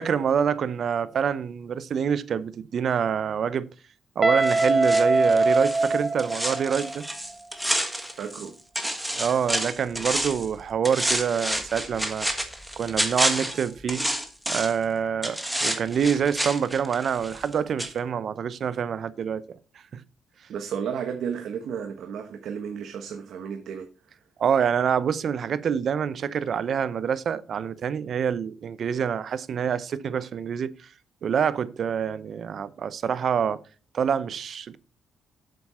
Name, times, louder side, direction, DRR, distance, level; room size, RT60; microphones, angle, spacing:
voice 1, 0.0-3.7 4.2-7.1 9.1-12.3 12.8-14.1 14.5-19.6 19.9-20.0 24.4-30.7 31.2-33.6 33.9-34.8, right 7 dB, 55° right, 0.7 m, -26 dB
Guitar, 4.2-7.0, right 3 dB, 20° right, 0.8 m, -22 dB
sound 1, 4.4-8.5 8.7-10.5 10.8-14.8 15.2-17.5 17.8-17.9, right 1 dB, 5° right, 1.6 m, -29 dB
voice 2, 8.2-8.5 20.5-23.9, right 7 dB, 70° right, 1.1 m, -33 dB
7.7 x 7.3 x 4.2 m
cardioid pair, 90°, 0 cm